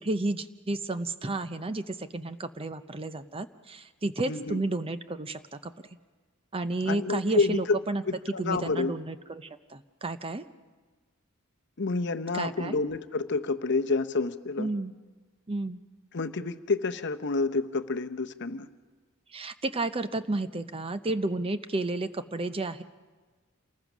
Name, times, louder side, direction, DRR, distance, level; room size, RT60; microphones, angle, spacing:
voice 1, 0.0-5.7 6.5-8.0 8.4-10.4 12.3-12.8 14.6-14.9 15.5-15.8 19.3-22.8, right 2 dB, 25° right, 11 dB, 0.6 m, -32 dB
voice 2, 4.3-4.6 6.8-7.8 8.1-8.9 11.8-14.7 16.1-18.7, left 3 dB, 55° left, 9 dB, 0.8 m, -28 dB
28.0 x 20.0 x 6.2 m, 1.4 s
head